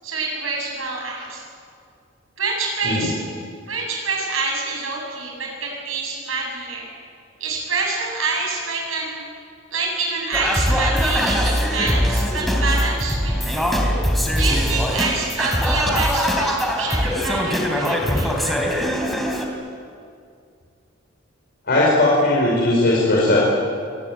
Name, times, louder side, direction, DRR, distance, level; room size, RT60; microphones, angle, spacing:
voice 1, 0.0-1.4 2.4-3.2 3.7-6.9 7.4-9.2 9.7-13.7 14.3-18.6, right 3 dB, 80° right, 0 dB, 7.8 m, -26 dB
Singing, 10.3-19.5, equal, ahead, 3.4 m, -21 dB
voice 2, 21.7-23.4, left 2 dB, 50° left, -5 dB, 5.0 m, -17 dB
25.5 x 19.5 x 9.2 m, 2.3 s
head